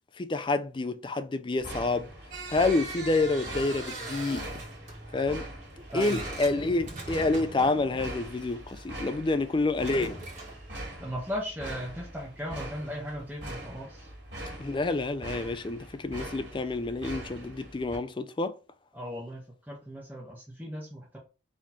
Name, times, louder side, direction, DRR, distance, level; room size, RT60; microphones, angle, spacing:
voice 1, 0.2-2.1 2.5-4.5 5.1-5.5 5.9-10.2 14.6-18.6, left 3 dB, 25° left, 0.4 m, -28 dB
sound 1, 1.6-18.0, right 1 dB, 65° right, 1.9 m, -43 dB
sound 2, 2.3-8.9 9.7-10.7, right 2 dB, 40° right, 1.6 m, -41 dB
voice 2, 5.9-6.2 11.0-14.1 18.9-21.2, equal, 10° right, 1.0 m, -37 dB
4.2 x 3.1 x 4.1 m
head